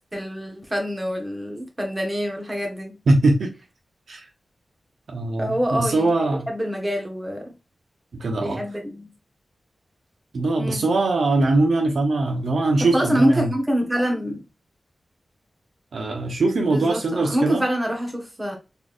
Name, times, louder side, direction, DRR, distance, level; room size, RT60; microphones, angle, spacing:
voice 1, 0.1-3.0 5.4-7.5 8.4-9.1 10.6-10.9 12.9-14.5 16.7-18.6, equal, 15° right, 1.1 m, -26 dB
voice 2, 3.1-3.5 4.1-4.3 5.1-6.5 8.1-8.6 10.3-13.5 15.9-17.6, right 2 dB, 90° right, 1.0 m, -21 dB
4.1 x 3.4 x 2.5 m
wide cardioid pair, 115°, 0 cm